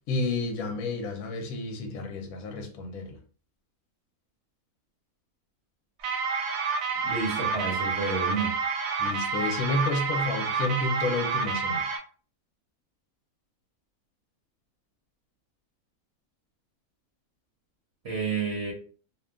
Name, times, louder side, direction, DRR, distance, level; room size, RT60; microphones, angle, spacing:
voice 1, 0.1-3.2 9.0-11.8, left 3 dB, 75° left, 1.0 m, -30 dB
sound 1, 6.0-12.0, right 5 dB, 75° right, 1.0 m, -29 dB
voice 2, 7.0-8.6 18.0-18.7, right 4 dB, 50° right, 1.0 m, -30 dB
2.7 x 2.2 x 2.3 m
omnidirectional pair, 1.6 m